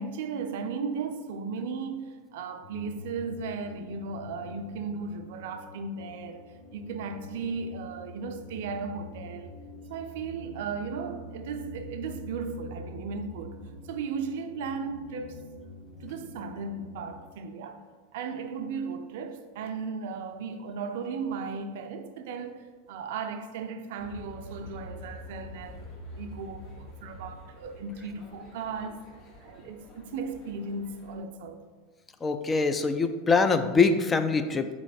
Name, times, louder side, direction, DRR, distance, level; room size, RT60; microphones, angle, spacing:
voice 1, 0.0-6.4 6.7-9.6 9.9-15.4 16.0-17.8 18.1-25.9 26.1-29.1 29.4-31.6, right 5 dB, 70° right, 0.4 m, -36 dB
sound 1, 2.6-17.2, left 2 dB, 75° left, 0.9 m, -46 dB
sound 2, 24.0-31.2, left 1 dB, 45° left, 1.1 m, -46 dB
voice 2, 32.2-34.8, left 4 dB, 20° left, 0.3 m, -24 dB
4.0 x 3.0 x 4.1 m
hypercardioid pair, 100°, 0 cm